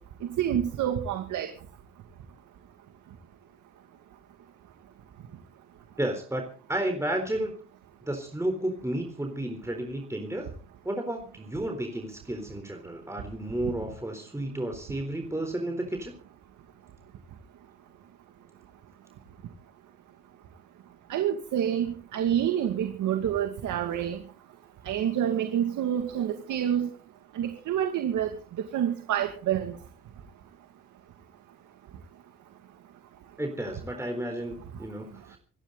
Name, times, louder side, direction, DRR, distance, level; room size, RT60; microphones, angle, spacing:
voice 1, 0.4-1.5 21.1-21.9 22.1-24.2 24.9-26.9 27.3-28.3 28.7-29.7, right 10 dB, 80° right, 6 dB, 2.4 m, -27 dB
voice 2, 6.0-7.5 8.0-10.5 10.8-16.1 33.4-35.4, right 1 dB, 10° right, 4 dB, 4.0 m, -32 dB
26.0 x 11.5 x 4.1 m, 0.38 s
cardioid pair, 90°, 30 cm